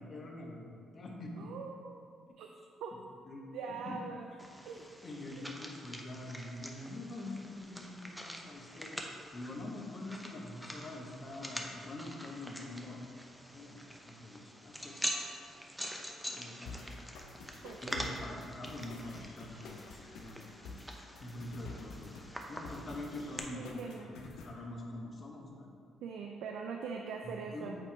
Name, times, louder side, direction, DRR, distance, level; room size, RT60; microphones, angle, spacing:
voice 1, 0.0-1.5 3.3-3.4 3.9-4.0 5.0-9.0 9.3-13.0 13.5-14.9 16.3-16.9 17.8-20.8 21.2-22.1 22.5-25.7 27.2-27.8, left 2 dB, 40° left, -1 dB, 1.1 m, -45 dB
voice 2, 1.4-2.1 2.4-2.5 2.8-2.9 3.5-4.3 4.6-4.9 5.3-5.5 17.6-18.2 23.5-24.1 26.0-27.8, right 5 dB, 85° right, 2 dB, 0.4 m, -42 dB
sound 1, 4.4-23.4, equal, ahead, 0.6 m, -45 dB
sound 2, 16.7-24.6, left 3 dB, 90° left, 0.7 m, -49 dB
8.0 x 3.0 x 4.5 m, 2.3 s
cardioid pair, 90°, 0 cm